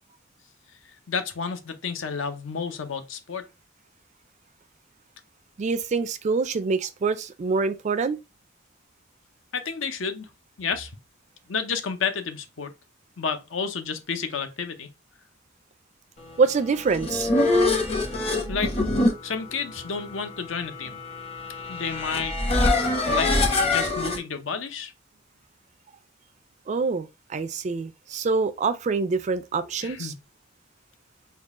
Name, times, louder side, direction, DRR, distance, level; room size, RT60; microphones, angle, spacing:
voice 1, 1.1-3.5 9.5-10.3 10.6-10.9 11.5-12.7 13.2-14.9 18.5-18.7 19.2-21.0 21.7-22.4 23.1-23.3 23.6-24.9 29.8-30.1, left 5 dB, 75° left, 0.7 m, -30 dB
voice 2, 5.6-8.2 16.4-17.3 26.7-30.1, right 4 dB, 35° right, 0.3 m, -25 dB
sound 1, 16.7-24.2, left 2 dB, 30° left, 0.9 m, -25 dB
3.7 x 2.3 x 3.6 m
head